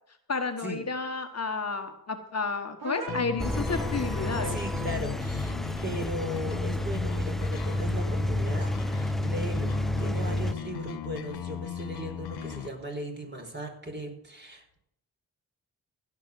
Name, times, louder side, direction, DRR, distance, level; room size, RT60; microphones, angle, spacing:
voice 1, 0.3-4.6, left 4 dB, 45° left, 6 dB, 1.4 m, -31 dB
sound 1, 2.8-5.0, right 3 dB, 75° right, 2.7 m, -39 dB
sound 2, 3.1-12.7, left 10 dB, 90° left, 0.9 m, -37 dB
Engine, 3.4-10.5, equal, ahead, 0.4 m, -30 dB
voice 2, 4.4-14.8, right 1 dB, 30° right, 2 dB, 4.6 m, -38 dB
16.0 x 6.1 x 7.7 m, 0.76 s
cardioid pair, 50°, 38 cm